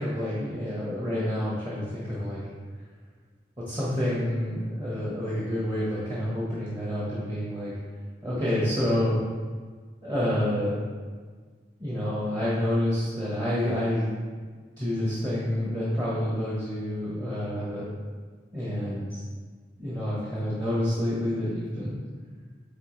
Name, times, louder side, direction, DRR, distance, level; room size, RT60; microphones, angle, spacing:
voice 1, 0.0-2.4 3.6-7.7 8.2-9.2 10.0-10.8 11.8-14.1 14.8-17.8 18.5-19.2 19.8-21.9, left 1 dB, 25° right, -7 dB, 1.1 m, -28 dB
8.9 x 3.9 x 3.1 m, 1.5 s
head